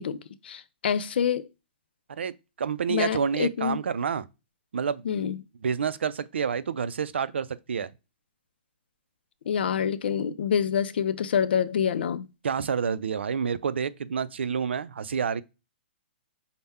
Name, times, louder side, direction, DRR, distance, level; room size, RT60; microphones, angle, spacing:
voice 1, 0.0-1.5 2.9-3.8 5.1-5.4 9.5-12.3, left 8 dB, 65° left, 0.4 m, -27 dB
voice 2, 2.6-4.3 4.7-5.0 5.6-7.9 12.4-15.4, right 6 dB, 90° right, 0.4 m, -28 dB
5.4 x 2.1 x 3.5 m
hypercardioid pair, 155°, 6 cm